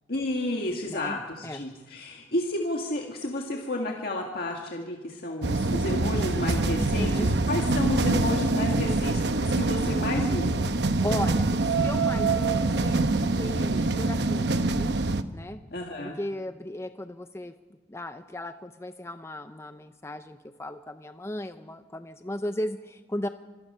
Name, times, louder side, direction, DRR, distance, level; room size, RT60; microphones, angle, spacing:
voice 1, 0.1-10.7 15.7-16.2, left 1 dB, 60° left, 0 dB, 1.8 m, -31 dB
voice 2, 0.8-1.2 1.4-1.6 6.7-7.3 10.8-14.9 15.3-15.6 16.2-17.5 17.9-23.3, left 1 dB, 15° left, 9 dB, 0.6 m, -36 dB
sound 1, 5.4-15.2, right 2 dB, 65° right, 0.9 m, -25 dB
26.5 x 19.0 x 5.5 m, 1.3 s
head